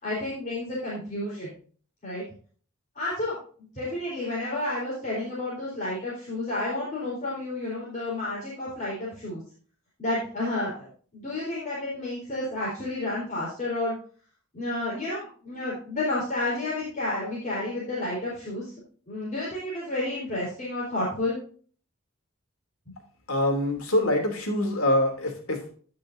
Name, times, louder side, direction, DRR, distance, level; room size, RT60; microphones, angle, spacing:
voice 1, 0.0-1.5 2.0-2.2 2.9-3.4 3.7-9.4 10.0-10.9 11.1-14.0 14.5-18.7 19.1-21.4, left 2 dB, 35° left, -7 dB, 3.9 m, -31 dB
voice 2, 23.3-25.7, left 1 dB, 85° left, 3 dB, 2.8 m, -25 dB
16.0 x 5.9 x 2.6 m, 0.43 s
head